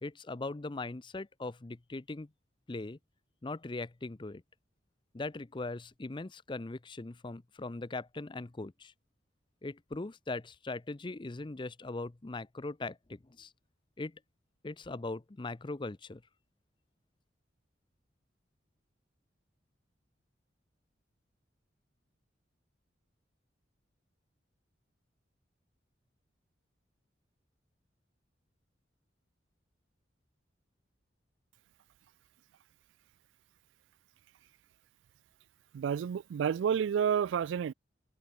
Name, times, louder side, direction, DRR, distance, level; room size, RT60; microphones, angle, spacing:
voice 1, 0.0-2.3 2.7-3.0 3.4-4.4 5.1-8.9 9.6-13.5 14.0-14.2 14.6-16.2, left 2 dB, 25° left, 0.5 m, -40 dB
voice 2, 35.7-37.7, right 8 dB, 85° right, 0.3 m, -30 dB
head